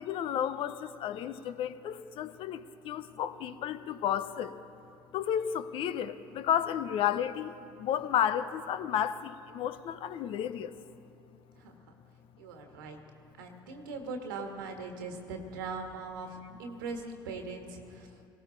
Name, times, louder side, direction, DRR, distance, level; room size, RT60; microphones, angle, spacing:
voice 1, 0.0-4.5 5.1-7.5 7.8-10.7, left 10 dB, 55° left, 13 dB, 0.7 m, -32 dB
voice 2, 12.4-13.0 13.4-18.1, right 4 dB, 80° right, 4 dB, 1.6 m, -40 dB
18.5 x 17.0 x 4.0 m, 2.6 s
hypercardioid pair, 60°, 11 cm